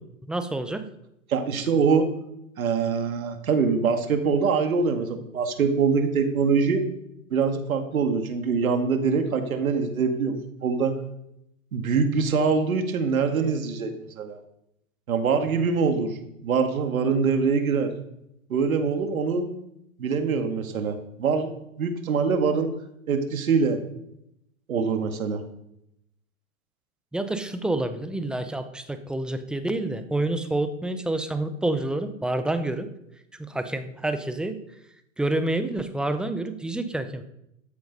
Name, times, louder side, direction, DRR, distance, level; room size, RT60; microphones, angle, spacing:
voice 1, 0.3-0.8 27.1-32.9 33.5-34.6 35.2-37.2, right 2 dB, ahead, 9 dB, 0.5 m, -28 dB
voice 2, 1.3-2.1 2.6-6.9 7.3-11.0 11.7-14.4 15.1-16.2 16.4-17.9 18.5-19.5 20.0-21.5 21.8-22.7 23.1-23.8 24.7-25.4, right 5 dB, 85° right, 6 dB, 2.1 m, -24 dB
13.0 x 7.8 x 5.4 m, 0.81 s
hypercardioid pair, 130°, 41 cm